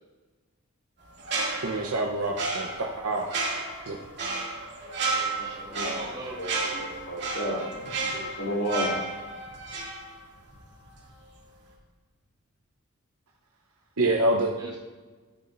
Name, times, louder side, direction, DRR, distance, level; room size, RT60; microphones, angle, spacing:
sound 1, 1.2-10.6 10.9-11.1, right 3 dB, 50° right, 2.4 m, -32 dB
voice 1, 1.6-3.3 3.9-4.0 14.0-14.7, right 1 dB, 80° right, 0 dB, 0.9 m, -26 dB
voice 2, 4.8-6.1 6.4-7.8 8.1-9.1, equal, 85° left, -4 dB, 3.1 m, -33 dB
voice 3, 5.4-6.5 14.6-14.8, right 1 dB, 20° right, -5 dB, 2.1 m, -40 dB
13.5 x 8.7 x 2.6 m, 1.3 s
head